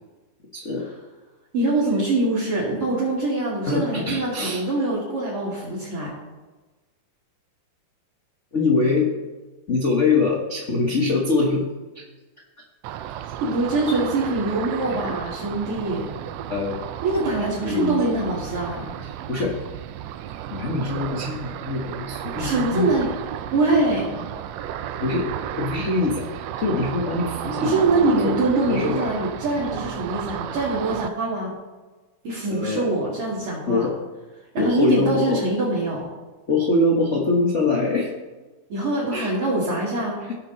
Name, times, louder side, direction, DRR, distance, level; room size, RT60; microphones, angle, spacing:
voice 1, 0.5-0.9 3.7-4.6 8.5-9.1 9.7-11.7 11.9-12.0 16.5-16.8 17.6-18.0 19.3-19.6 20.5-22.9 25.0-25.3 25.6-27.7 28.2-29.1 32.5-32.9 33.7-33.9 34.6-35.4 36.5-38.1 39.1-39.3 40.3-40.4, left 3 dB, 70° left, -1 dB, 0.6 m, -23 dB
voice 2, 1.5-6.1 13.4-16.1 17.0-18.9 22.4-23.1 23.5-24.1 27.6-31.5 32.2-33.9 34.5-36.0 38.7-40.2, right 2 dB, 50° right, -9 dB, 2.9 m, -24 dB
Ocean, 12.8-31.1, right 11 dB, 80° right, 1.4 m, -33 dB
16.0 x 6.1 x 3.9 m, 1.2 s
omnidirectional pair, 3.4 m